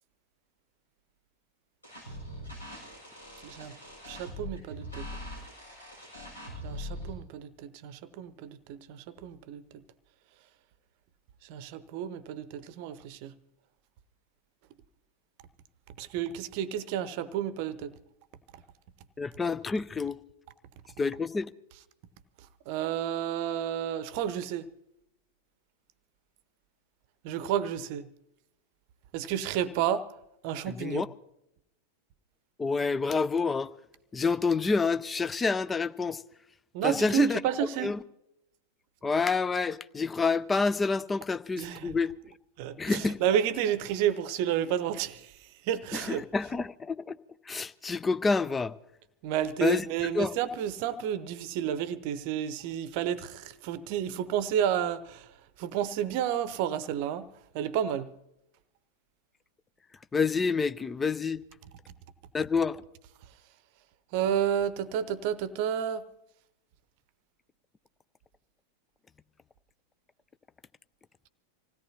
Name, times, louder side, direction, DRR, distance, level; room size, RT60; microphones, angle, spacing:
sound 1, 1.8-7.1, left 1 dB, 80° left, 7.1 m, -42 dB
voice 1, 4.1-5.1 6.6-9.8 11.4-13.3 16.0-17.9 22.7-24.7 27.2-28.1 29.1-30.1 30.4-31.1 36.7-38.0 41.6-42.0 42.6-45.4 45.6-46.2 49.2-55.3 55.6-57.3 57.5-58.1 64.1-66.1, right 9 dB, 45° right, 0.8 m, -31 dB
voice 2, 19.2-20.2 21.0-21.5 30.7-31.1 32.6-33.7 34.1-36.2 36.8-37.4 37.8-38.0 39.0-42.3 42.8-43.2 45.9-47.2 47.5-48.7 49.6-49.9 50.1-50.3 60.1-61.4 62.3-62.8, left 4 dB, 15° left, 0.5 m, -28 dB
26.0 x 16.5 x 2.8 m
figure-of-eight pair, 90°, 0 cm